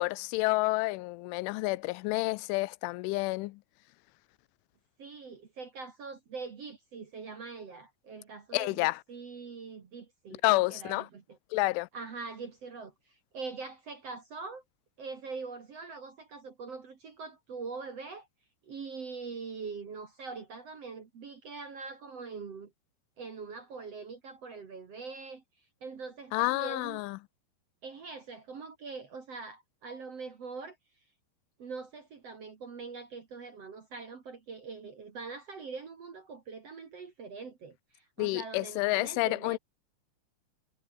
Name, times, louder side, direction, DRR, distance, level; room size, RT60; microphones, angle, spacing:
voice 1, 0.0-3.6 8.5-9.0 10.4-11.1 11.5-11.9 26.3-27.2 38.2-39.6, left 22 dB, 90° left, 3.1 m, -29 dB
voice 2, 5.0-11.4 11.9-14.6 15.0-18.3 18.6-22.7 23.2-27.0 27.8-30.8 31.6-39.6, right 4 dB, 45° right, 2.2 m, -43 dB
omnidirectional pair, 5.5 m